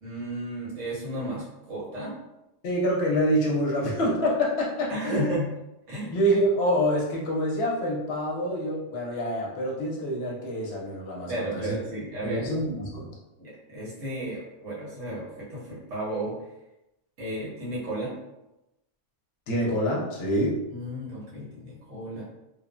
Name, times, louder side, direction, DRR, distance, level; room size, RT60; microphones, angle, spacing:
voice 1, 0.0-2.1 4.9-5.5 5.9-6.1 11.3-12.4 13.4-16.4 17.2-18.1 20.7-22.2, right 1 dB, 80° right, -7 dB, 1.4 m, -33 dB
voice 2, 2.6-5.4 6.0-11.7 12.2-13.1 19.5-20.6, equal, 65° left, -2 dB, 0.8 m, -26 dB
3.0 x 2.0 x 2.4 m, 0.93 s
omnidirectional pair, 1.2 m